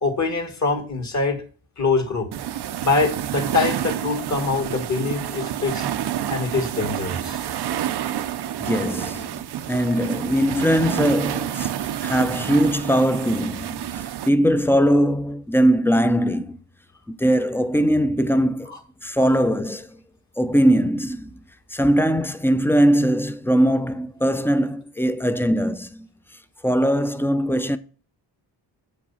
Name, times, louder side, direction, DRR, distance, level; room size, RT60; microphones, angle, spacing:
voice 1, 0.0-1.4 1.8-2.3 2.8-5.9 6.3-7.4 18.7-18.8, left 4 dB, 40° left, 1.9 m, -24 dB
sound 1, 2.3-14.3, right 11 dB, 60° right, 0.7 m, -28 dB
voice 2, 8.6-9.3 9.7-16.6 17.1-18.7 19.0-19.9 20.4-21.3 21.7-26.1 26.6-27.8, equal, 5° left, 0.6 m, -20 dB
7.2 x 5.2 x 5.6 m
cardioid pair, 95°, 44 cm